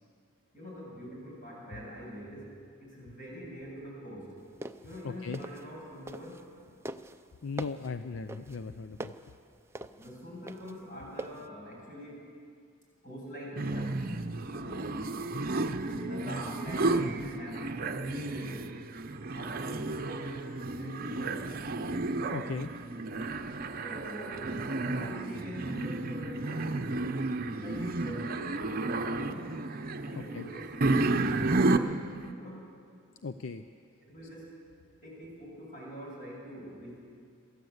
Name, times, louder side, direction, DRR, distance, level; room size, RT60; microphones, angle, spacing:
voice 1, 0.5-4.4 4.8-6.7 9.9-12.2 13.0-14.0 14.5-15.1 15.7-18.7 19.3-21.6 23.8-26.9 27.5-29.7 30.1-30.7 31.3-32.1 32.4-32.8 34.0-34.5 35.0-37.0, equal, 40° left, -3 dB, 7.3 m, -44 dB
sound 1, 4.4-6.5 6.8-11.5, right 2 dB, 15° right, 0.5 m, -43 dB
voice 2, 5.0-5.4 7.4-9.1 22.3-22.7 30.2-30.4 33.2-33.6, left 4 dB, 65° left, 10 dB, 0.5 m, -37 dB
sound 2, 13.6-32.3, right 2 dB, 45° right, 0.7 m, -32 dB
23.0 x 14.5 x 8.0 m, 2.3 s
head